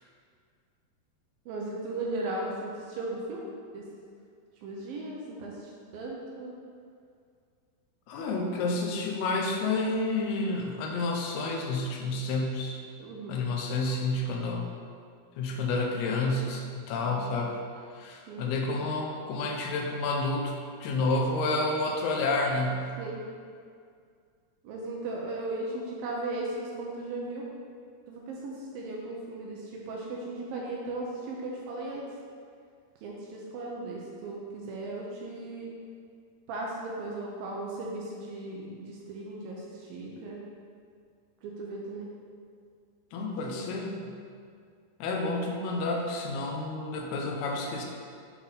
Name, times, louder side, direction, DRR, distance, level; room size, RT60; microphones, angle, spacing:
voice 1, 1.5-3.4 3.7-3.9 4.6-5.6 5.9-6.5 13.0-13.4 17.1-17.3 18.3-18.4 23.0-23.2 24.6-27.5 28.1-32.1 33.0-35.7 36.5-40.4 41.4-42.1 43.4-43.5, right 2 dB, 75° right, -3 dB, 2.3 m, -37 dB
voice 2, 8.1-12.8 13.3-14.7 15.4-17.6 17.9-20.5 20.8-22.9 43.1-44.1 45.0-47.9, left 2 dB, 80° left, 1 dB, 2.6 m, -30 dB
7.7 x 4.0 x 4.0 m, 2.2 s
omnidirectional pair, 4.5 m